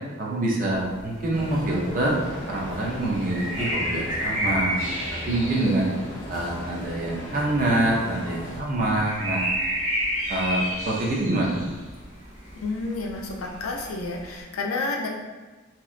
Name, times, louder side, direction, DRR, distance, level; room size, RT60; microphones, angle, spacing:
voice 1, 0.2-2.2 2.5-4.9 5.3-5.9 6.3-9.4 10.3-11.6, right 1 dB, 40° right, -3 dB, 0.5 m, -25 dB
sound 1, 0.7-14.4, equal, 65° right, 1.2 m, -32 dB
sound 2, 1.3-8.6, equal, 15° left, 0.6 m, -37 dB
voice 2, 12.5-15.1, left 3 dB, 90° left, 1 dB, 0.4 m, -30 dB
2.7 x 2.1 x 2.4 m, 1.3 s
head